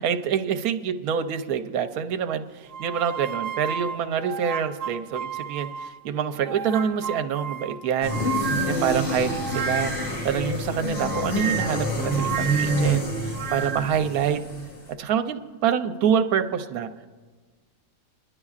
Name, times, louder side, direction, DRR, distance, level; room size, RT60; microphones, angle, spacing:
voice 1, 0.0-8.3 8.6-14.4 15.0-16.9, right 8 dB, 80° right, 9 dB, 1.2 m, -26 dB
sound 1, 2.7-6.0 6.4-10.2 11.0-14.0, right 7 dB, 45° right, 0.9 m, -32 dB
sound 2, 8.0-14.9, equal, 55° left, 1.5 m, -27 dB
25.5 x 11.0 x 2.4 m, 1.3 s
omnidirectional pair, 1.5 m